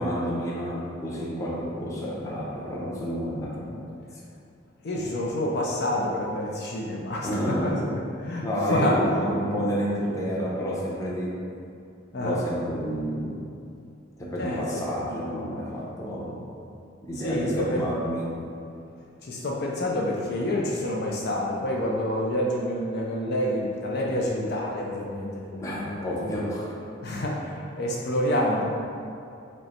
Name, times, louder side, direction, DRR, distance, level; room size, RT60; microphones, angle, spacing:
voice 1, 0.0-3.8 7.2-7.8 8.4-11.3 12.2-13.4 14.2-16.4 17.0-18.4 25.6-26.7, equal, 15° left, -6 dB, 0.7 m, -29 dB
voice 2, 4.8-7.7 8.2-9.0 12.1-12.4 14.4-14.6 17.2-17.8 19.2-26.4 27.0-28.6, left 1 dB, 55° left, -3 dB, 0.5 m, -28 dB
5.2 x 2.1 x 4.2 m, 2.6 s
head